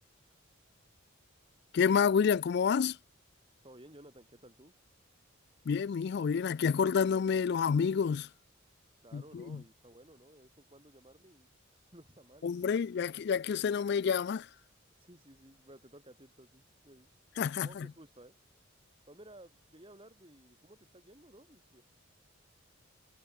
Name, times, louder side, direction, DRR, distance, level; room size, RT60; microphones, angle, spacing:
voice 1, 1.7-3.0 5.7-8.3 9.1-9.6 12.4-14.5 17.4-17.9, left 6 dB, 50° left, 0.3 m, -29 dB
voice 2, 3.6-4.7 9.0-12.5 15.0-17.1 17.6-18.3 19.1-21.8, right 1 dB, 25° right, 4.1 m, -56 dB
head